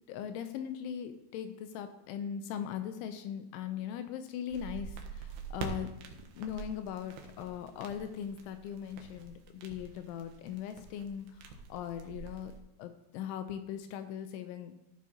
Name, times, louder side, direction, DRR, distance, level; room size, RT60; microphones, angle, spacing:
voice 1, 0.1-5.9 6.4-12.5 12.8-14.8, left 9 dB, 80° left, 9 dB, 2.9 m, -40 dB
sound 1, 4.5-12.6, right 5 dB, 75° right, 2.5 m, -46 dB
14.0 x 7.5 x 2.8 m, 0.89 s
omnidirectional pair, 5.8 m